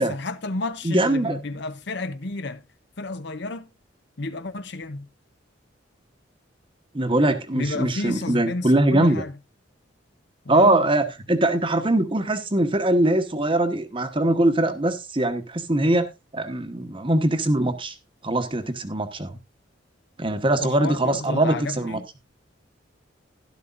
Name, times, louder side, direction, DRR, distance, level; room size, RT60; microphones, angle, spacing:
voice 1, 0.0-2.6 3.0-3.7 4.2-5.1 7.5-9.3 10.4-10.9 20.6-22.1, left 2 dB, 60° left, 0.8 m, -31 dB
voice 2, 0.8-1.4 6.9-9.2 10.5-17.9 18.2-19.3 20.2-22.0, right 1 dB, 25° right, 1.1 m, -22 dB
12.0 x 11.5 x 2.6 m
head